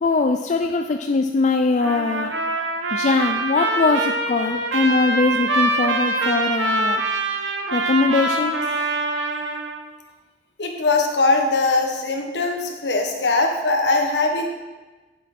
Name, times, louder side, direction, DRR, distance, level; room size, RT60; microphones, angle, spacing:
voice 1, 0.0-2.3 2.9-7.0 7.7-8.6, left 3 dB, 40° left, 5 dB, 0.4 m, -21 dB
Trumpet, 1.8-9.8, right 2 dB, 85° right, 1.0 m, -24 dB
voice 2, 10.6-14.5, left 3 dB, 70° left, 3 dB, 1.3 m, -21 dB
8.9 x 7.6 x 4.3 m, 1.2 s
head